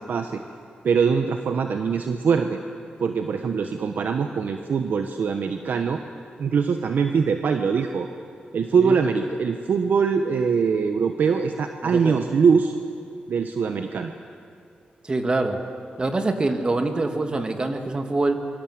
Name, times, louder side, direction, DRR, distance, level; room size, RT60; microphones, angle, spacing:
voice 1, 0.1-0.4 0.8-2.6 3.0-6.0 6.4-8.1 8.5-12.8 13.3-14.1, right 6 dB, 70° right, 6 dB, 1.2 m, -22 dB
voice 2, 11.8-12.2 15.0-15.6 16.0-18.5, right 2 dB, 30° right, 6 dB, 2.2 m, -25 dB
26.5 x 23.5 x 8.0 m, 2.5 s
wide cardioid pair, 105°, 3 cm